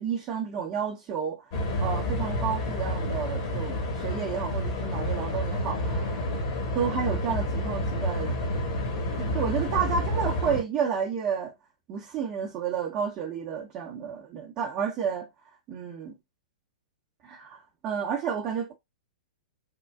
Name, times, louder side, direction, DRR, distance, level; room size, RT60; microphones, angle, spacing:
voice 1, 0.0-6.3 6.7-8.3 9.2-11.5 11.9-15.3 15.7-16.2 17.2-18.7, right 7 dB, 30° right, 0.8 m, -31 dB
sound 1, 1.5-10.6, left 1 dB, 45° left, 1.2 m, -29 dB
3.7 x 2.3 x 2.3 m
figure-of-eight pair, 110°, 4 cm